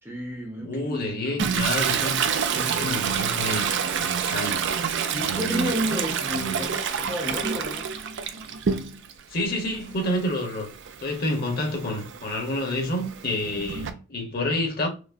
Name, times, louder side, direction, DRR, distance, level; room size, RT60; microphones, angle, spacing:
voice 1, 0.0-1.2 2.5-3.2 5.1-7.8 8.3-8.5 13.5-13.9, equal, 10° right, 0.7 m, -32 dB
voice 2, 0.6-2.2 2.7-4.6 5.2-5.7 6.3-6.6 9.3-10.7 11.0-14.9, left 1 dB, 40° left, 1.0 m, -29 dB
Toilet flush, 1.4-9.2 9.6-13.9, right 7 dB, 55° right, 0.4 m, -28 dB
4.9 x 2.1 x 2.5 m
head